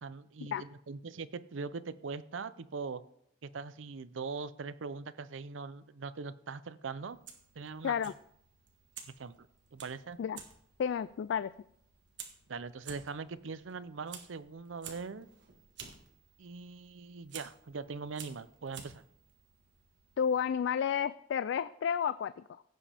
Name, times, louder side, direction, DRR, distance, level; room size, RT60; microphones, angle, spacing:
voice 1, 0.0-3.0 3.4-7.2 7.6-7.9 9.2-9.5 9.7-10.2 12.5-15.3 16.4-19.0, right 4 dB, 80° right, 15 dB, 0.6 m, -41 dB
Fire, 7.1-20.5, right 7 dB, 65° right, 1.6 m, -53 dB
voice 2, 10.8-11.5 20.2-22.6, left 7 dB, 70° left, 15 dB, 0.3 m, -31 dB
16.5 x 7.4 x 3.5 m, 0.72 s
head